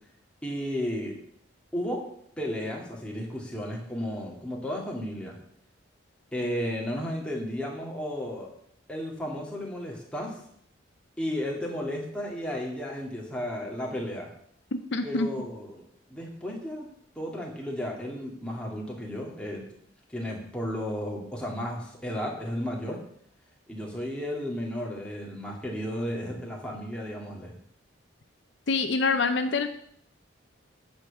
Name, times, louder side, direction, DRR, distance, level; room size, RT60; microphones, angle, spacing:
voice 1, 0.4-1.2 1.7-2.0 2.4-5.4 6.3-8.5 8.9-10.4 11.2-14.3 15.0-16.9 17.2-19.7 20.1-23.0 23.7-27.5, equal, 5° left, -2 dB, 2.1 m, -33 dB
voice 2, 14.7-15.3 28.7-29.7, left 4 dB, 65° left, 8 dB, 0.6 m, -26 dB
9.3 x 5.3 x 7.2 m, 0.67 s
head